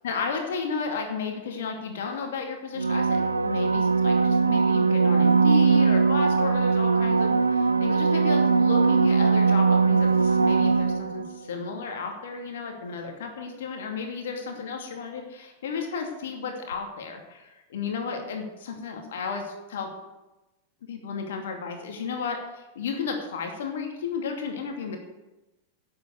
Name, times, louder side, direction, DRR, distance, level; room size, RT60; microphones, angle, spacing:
voice 1, 0.0-19.9 20.9-25.0, left 5 dB, 60° left, 3 dB, 2.5 m, -33 dB
sound 1, 2.8-11.4 16.7-16.8, right 4 dB, 80° right, 0.5 m, -21 dB
11.5 x 7.9 x 7.9 m, 1.0 s
figure-of-eight pair, 90°, 0 cm